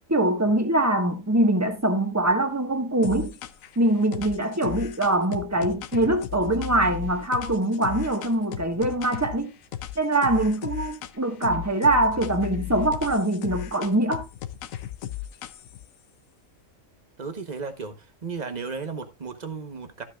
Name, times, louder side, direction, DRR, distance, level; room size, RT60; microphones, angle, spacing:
voice 1, 0.1-3.3 3.7-9.5 9.9-14.2, right 1 dB, 10° right, 1.5 m, -23 dB
sound 1, 3.0-3.8 4.1-9.4 9.7-11.2 11.4-15.9, left 12 dB, 90° left, 1.1 m, -35 dB
voice 2, 17.2-17.9 18.2-20.0, right 5 dB, 35° right, 1.2 m, -34 dB
13.5 x 7.5 x 2.4 m
omnidirectional pair, 1.4 m